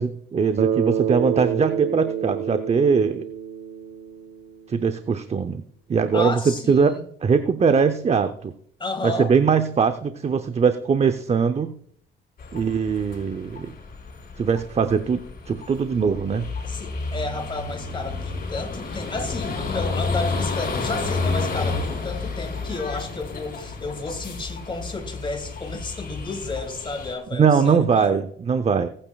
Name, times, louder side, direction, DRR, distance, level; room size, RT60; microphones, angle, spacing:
voice 1, 0.0-3.2 4.7-5.6 5.9-8.5 9.0-11.7 12.5-13.7 14.4-16.5 27.3-28.9, right 6 dB, 35° right, 10 dB, 0.6 m, -21 dB
Bass guitar, 0.6-4.8, right 9 dB, 50° right, 1.0 m, -28 dB
voice 2, 6.1-7.1 8.8-9.3 16.6-28.2, left 3 dB, 25° left, 5 dB, 2.7 m, -32 dB
sound 1, 12.4-27.2, left 4 dB, 45° left, 4.0 m, -31 dB
19.5 x 8.9 x 2.3 m, 0.64 s
cardioid pair, 90°, 20 cm